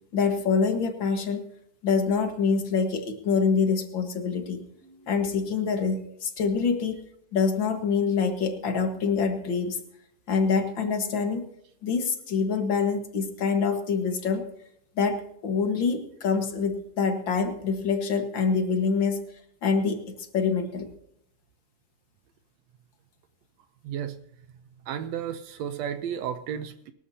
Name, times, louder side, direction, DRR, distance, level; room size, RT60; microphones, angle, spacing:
voice 1, 0.1-1.5 1.8-7.0 7.3-9.8 10.3-11.5 11.8-14.5 15.0-19.2 19.6-20.9, left 5 dB, 45° left, 5 dB, 2.0 m, -26 dB
voice 2, 23.8-24.2 24.9-26.9, right 9 dB, 70° right, 9 dB, 1.8 m, -33 dB
23.5 x 12.5 x 2.8 m, 0.73 s
omnidirectional pair, 3.4 m